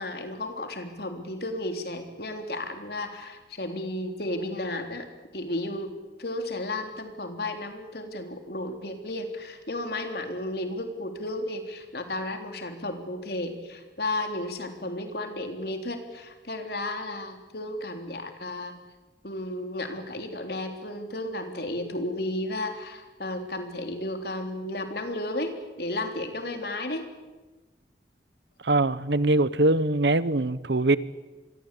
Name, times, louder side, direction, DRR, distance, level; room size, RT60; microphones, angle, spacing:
voice 1, 0.0-5.1 5.3-5.9 6.2-18.7 19.2-27.1, left 1 dB, 60° left, 5 dB, 3.6 m, -33 dB
voice 2, 28.6-31.0, right 2 dB, 80° right, 16 dB, 1.1 m, -22 dB
27.0 x 22.5 x 8.5 m, 1.2 s
head